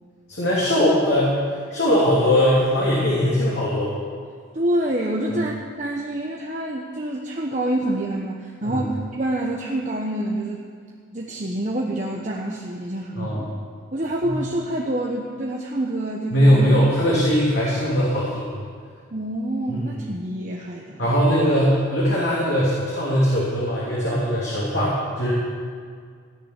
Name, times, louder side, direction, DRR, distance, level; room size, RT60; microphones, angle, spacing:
voice 1, 0.3-1.3 1.7-3.9 8.6-8.8 13.2-13.4 14.2-14.3 16.3-18.4 19.7-19.8 21.0-25.3, equal, 65° left, -7 dB, 3.0 m, -20 dB
voice 2, 4.5-10.6 11.1-13.5 13.9-16.7 19.1-21.0, right 1 dB, 40° right, -2 dB, 1.0 m, -27 dB
16.0 x 6.9 x 9.6 m, 2.1 s
head